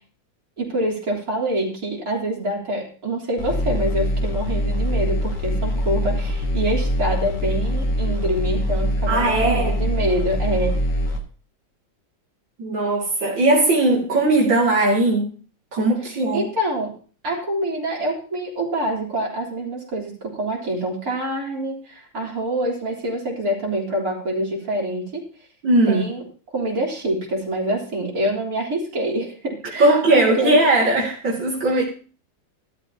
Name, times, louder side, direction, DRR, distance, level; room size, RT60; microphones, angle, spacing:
voice 1, 0.6-10.8 16.1-17.0 17.2-25.2 25.8-26.2 26.5-30.5 31.7-31.8, right 1 dB, 50° right, -3 dB, 4.0 m, -26 dB
sound 1, 3.4-11.2, equal, 65° left, 2.2 m, -23 dB
voice 2, 9.1-9.8 12.6-15.3 15.7-16.5 25.6-26.1 29.8-31.8, right 2 dB, 75° right, -4 dB, 3.3 m, -18 dB
14.5 x 12.5 x 2.9 m, 0.40 s
omnidirectional pair, 2.0 m